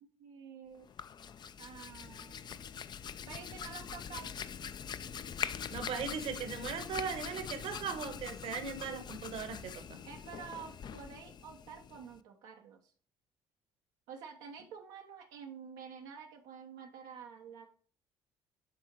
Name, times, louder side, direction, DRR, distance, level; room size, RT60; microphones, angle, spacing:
voice 1, 0.0-0.9 1.6-2.6 3.3-4.3 10.0-12.9 14.1-17.7, right 7 dB, 90° right, 1 dB, 1.0 m, -49 dB
Hands, 0.8-12.2, left 7 dB, 40° left, 0.4 m, -43 dB
voice 2, 5.7-10.0, right 6 dB, 65° right, 7 dB, 1.3 m, -38 dB
7.6 x 3.7 x 4.6 m, 0.42 s
supercardioid pair, 85°, 11 cm